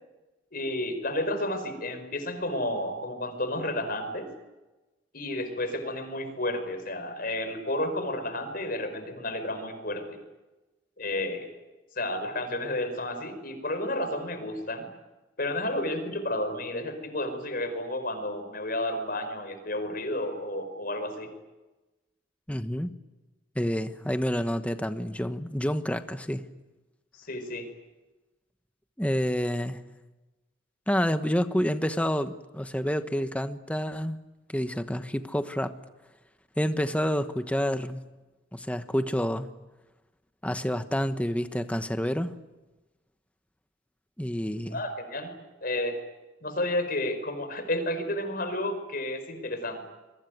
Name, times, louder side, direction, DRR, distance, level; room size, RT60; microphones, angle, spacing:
voice 1, 0.5-4.3 5.1-10.2 11.0-11.5 11.9-14.9 15.4-21.3 27.2-27.7 44.7-45.3 45.6-46.0 46.4-49.8, left 1 dB, 50° left, 5.2 m, -31 dB
voice 2, 22.5-22.9 23.5-26.4 29.0-29.8 30.9-34.2 34.5-35.7 36.6-38.0 38.5-39.5 40.4-42.3 44.2-44.8, equal, 5° left, 1.1 m, -28 dB
26.5 x 22.5 x 9.4 m
head